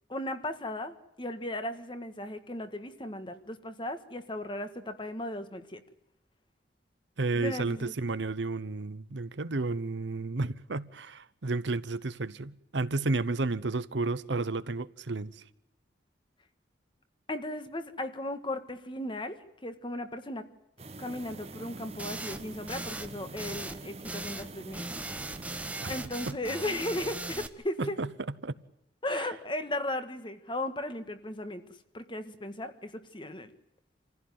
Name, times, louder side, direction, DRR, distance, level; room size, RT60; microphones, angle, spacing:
voice 1, 0.1-5.8 7.3-7.9 17.3-20.5 21.0-24.8 25.9-28.0 29.0-31.6 31.9-33.5, left 1 dB, 25° left, 1.6 m, -36 dB
voice 2, 7.2-15.4 25.8-25.9 26.3-26.4 27.8-28.1 28.4-28.5 29.1-29.3, right 3 dB, 75° right, 0.9 m, -32 dB
sound 1, 20.8-26.1, right 2 dB, 35° right, 1.2 m, -45 dB
sound 2, 22.0-22.4 22.7-23.1 23.4-23.8 24.0-24.5 24.7-27.5, right 2 dB, 10° right, 1.1 m, -38 dB
27.0 x 15.5 x 9.3 m
head